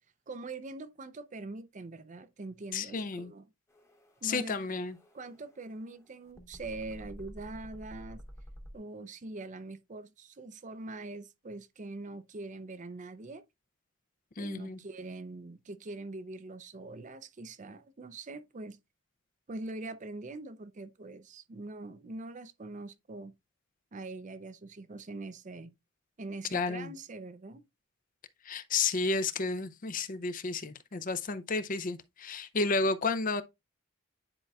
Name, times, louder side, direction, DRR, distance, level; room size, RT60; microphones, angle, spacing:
voice 1, 0.3-3.4 4.2-4.6 5.1-8.2 8.7-13.4 14.4-18.8 19.5-23.3 23.9-25.7 26.2-27.6, right 2 dB, 35° right, 0.5 m, -43 dB
voice 2, 2.7-3.3 4.2-5.0 14.4-14.8 26.5-26.9 28.4-33.4, left 4 dB, 40° left, 0.5 m, -32 dB
sound 1, 3.7-8.8, equal, 15° left, 1.1 m, -50 dB
9.9 x 4.4 x 2.3 m
head